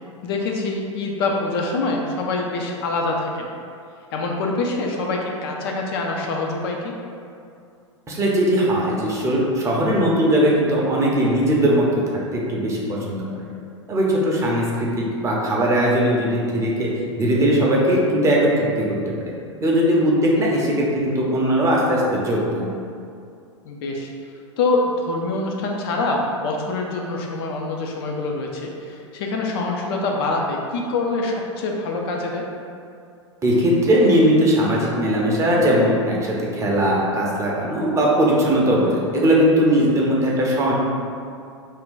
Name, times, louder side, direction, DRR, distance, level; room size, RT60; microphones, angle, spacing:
voice 1, 0.2-3.5 4.1-6.9 23.6-24.1 24.6-32.4, left 3 dB, 50° left, 0 dB, 0.4 m, -25 dB
voice 2, 8.1-11.9 12.3-13.3 13.9-16.9 17.2-19.3 19.6-22.7 33.4-40.7, equal, 20° right, -3 dB, 0.6 m, -19 dB
2.6 x 2.2 x 3.7 m, 2.4 s
figure-of-eight pair, 90°, 16 cm